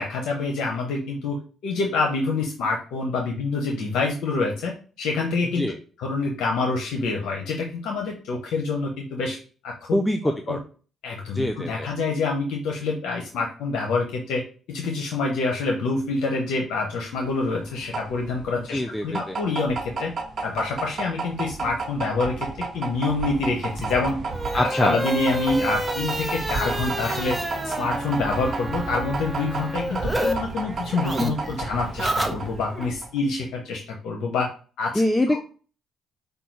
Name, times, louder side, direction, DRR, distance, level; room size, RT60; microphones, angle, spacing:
voice 1, 0.0-1.4 1.6-5.7 6.0-9.4 9.6-9.7 10.2-10.6 11.0-14.4 14.7-20.1 20.4-24.2 24.5-27.4 27.6-34.5 34.8-35.0 35.3-35.4, left 3 dB, 85° left, 1 dB, 0.7 m, -26 dB
voice 2, 9.9-10.6 11.3-11.9 18.7-19.4 24.5-25.0 34.9-35.4, left 1 dB, 10° left, 5 dB, 0.4 m, -24 dB
sound 1, 17.2-33.2, right 4 dB, 55° right, 1.1 m, -32 dB
sound 2, 23.7-30.3 30.6-32.9, equal, 10° right, 0.8 m, -30 dB
5.2 x 2.3 x 4.4 m, 0.39 s
cardioid pair, 90°, 0 cm